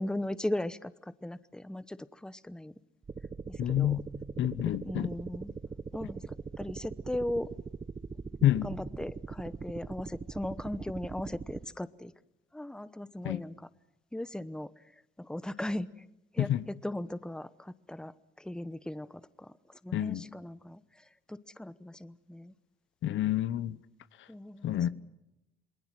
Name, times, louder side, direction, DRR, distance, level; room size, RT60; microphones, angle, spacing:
voice 1, 0.0-2.7 3.5-4.0 4.8-5.5 5.9-7.5 8.6-12.1 12.5-13.7 14.1-14.8 15.2-16.1 16.3-22.5 24.3-24.8, left 1 dB, 5° left, 0.9 m, -38 dB
sound 1, 3.0-11.7, right 4 dB, 25° right, 0.9 m, -41 dB
voice 2, 3.6-4.0 4.4-5.1 8.4-8.7 13.2-13.4 16.4-16.6 19.9-20.2 23.0-23.8 24.6-24.9, left 12 dB, 75° left, 1.0 m, -28 dB
27.5 x 21.0 x 7.6 m
cardioid pair, 90°, 20 cm